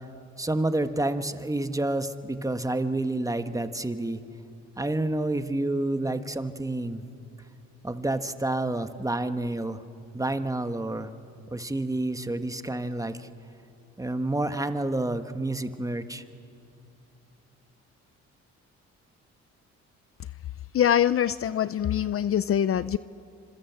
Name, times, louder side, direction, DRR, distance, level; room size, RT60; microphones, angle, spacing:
voice 1, 0.4-4.2 4.8-7.0 7.8-9.8 10.1-11.1 11.5-13.3 14.0-16.2, right 2 dB, 10° right, 9 dB, 1.4 m, -29 dB
voice 2, 20.7-23.0, left 10 dB, 50° left, 16 dB, 0.6 m, -24 dB
28.0 x 25.5 x 8.1 m, 2.6 s
cardioid pair, 90°, 30 cm